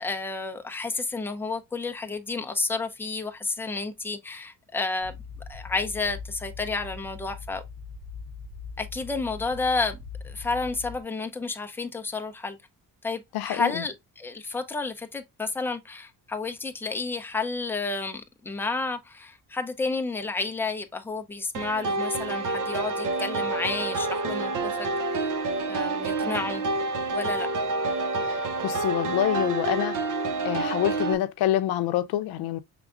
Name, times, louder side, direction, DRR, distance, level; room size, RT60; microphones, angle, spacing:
voice 1, 0.0-5.2 5.5-7.6 8.8-10.0 10.2-12.6 13.0-25.3 25.7-26.6 27.1-27.5, left 3 dB, 5° left, 0.6 m, -31 dB
sound 1, 5.0-11.0, left 5 dB, 70° right, 1.1 m, -41 dB
voice 2, 13.3-13.8 28.2-28.4 28.6-30.0 30.4-32.6, left 12 dB, 90° left, 0.6 m, -26 dB
sound 2, 21.5-31.1, right 3 dB, 55° right, 0.7 m, -28 dB
6.1 x 3.5 x 2.4 m
cardioid pair, 150°, 36 cm